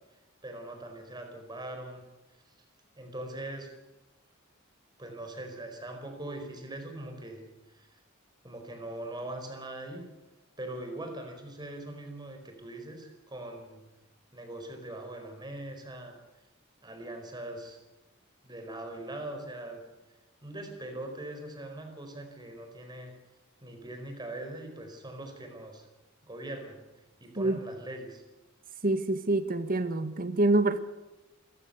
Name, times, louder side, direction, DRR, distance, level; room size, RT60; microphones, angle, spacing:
voice 1, 0.4-2.0 3.0-3.7 5.0-7.4 7.8-8.0 8.4-10.1 10.6-13.8 14.3-16.1 16.8-17.8 18.4-19.8 20.4-23.1 23.6-25.9 26.2-26.8 27.2-28.2, right 1 dB, 20° right, 5 dB, 4.7 m, -41 dB
voice 2, 28.8-30.8, right 2 dB, 45° right, 10 dB, 1.6 m, -26 dB
28.0 x 15.0 x 8.2 m, 1.0 s
head